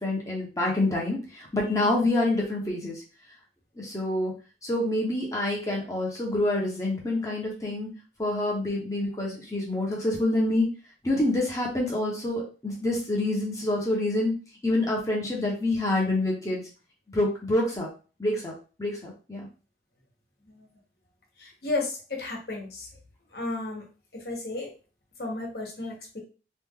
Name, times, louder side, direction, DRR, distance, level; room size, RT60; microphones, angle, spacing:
voice 1, 0.0-3.0 3.8-4.3 4.6-7.9 8.2-10.7 11.0-14.3 14.6-16.6 17.1-17.9 18.2-18.5 18.8-19.5, left 1 dB, 20° left, -3 dB, 0.9 m, -27 dB
voice 2, 21.4-22.9 23.3-23.8 24.1-24.7 25.2-26.2, left 2 dB, 60° left, -1 dB, 1.2 m, -33 dB
3.0 x 2.6 x 3.6 m, 0.34 s
head